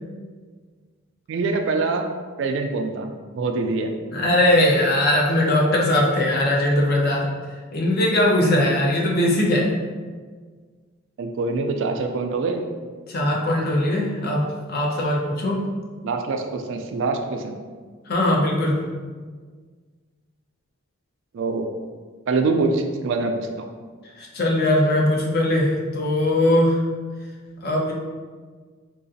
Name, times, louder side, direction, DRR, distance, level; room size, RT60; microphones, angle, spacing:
voice 1, 1.3-2.1 2.4-3.9 11.2-12.7 16.0-17.6 21.3-21.7 22.3-23.7, right 3 dB, 60° right, 5 dB, 0.3 m, -24 dB
voice 2, 4.1-7.3 7.7-9.7 13.1-15.6 18.1-18.8 24.2-26.8 27.6-27.9, left 1 dB, 50° left, -1 dB, 0.6 m, -20 dB
3.8 x 2.4 x 2.6 m, 1.5 s
head